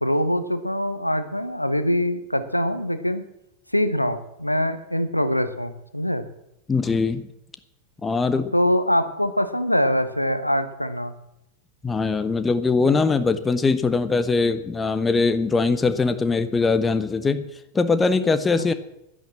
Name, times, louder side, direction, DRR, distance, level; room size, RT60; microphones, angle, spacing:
voice 1, 0.0-3.2 3.7-6.3 8.5-11.1, equal, 90° left, 11 dB, 1.0 m, -23 dB
voice 2, 6.7-7.3 8.0-8.5 11.8-17.4 17.7-18.7, left 4 dB, 15° left, 11 dB, 1.0 m, -21 dB
11.0 x 10.5 x 7.6 m, 0.83 s
figure-of-eight pair, 90°, 0 cm